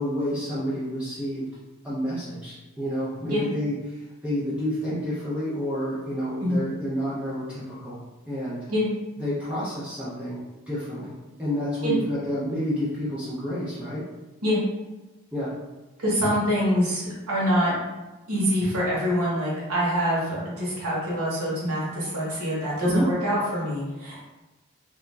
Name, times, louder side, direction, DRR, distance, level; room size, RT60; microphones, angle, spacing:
voice 1, 0.0-1.5 1.8-8.0 8.3-8.7 9.2-10.4 10.7-11.1 11.4-14.1 15.3-15.5 22.8-23.1, equal, 5° right, -10 dB, 0.4 m, -29 dB
voice 2, 16.0-17.7 18.3-24.2, equal, 90° right, -6 dB, 0.9 m, -25 dB
2.4 x 2.2 x 3.0 m, 1.1 s
head